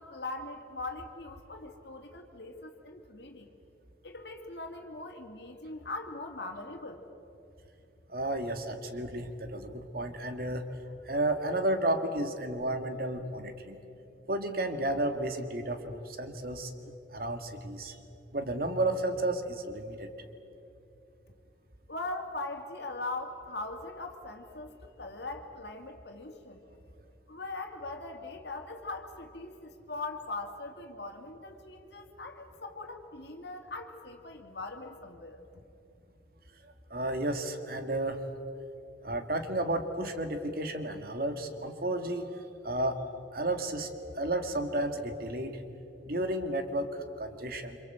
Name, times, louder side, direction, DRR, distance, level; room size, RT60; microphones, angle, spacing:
voice 1, 0.0-3.5 4.0-7.0 21.9-26.6 27.3-35.6, left 2 dB, 65° left, 3 dB, 2.5 m, -41 dB
voice 2, 8.1-10.7 11.0-13.8 14.3-16.7 17.1-18.0 18.3-20.1 36.6-38.2 39.0-42.3 42.6-43.0 43.3-43.9 44.1-45.6 46.0-47.8, right 1 dB, 50° right, 7 dB, 2.1 m, -32 dB
28.0 x 26.0 x 8.0 m, 2.8 s
head